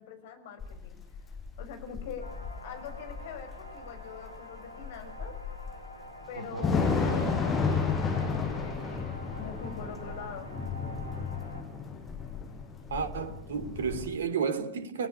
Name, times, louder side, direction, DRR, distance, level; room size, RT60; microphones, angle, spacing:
voice 1, 0.0-2.3 2.6-5.3 6.3-10.6, left 7 dB, 55° left, 6.0 m, -44 dB
Thunder / Rain, 0.6-14.1, left 5 dB, 20° left, 6.8 m, -33 dB
sound 1, 2.2-11.6, equal, 85° left, 4.1 m, -46 dB
voice 2, 6.4-6.7 12.9-15.1, right 6 dB, 65° right, 3.1 m, -32 dB
30.0 x 19.0 x 9.9 m
figure-of-eight pair, 90°, 0 cm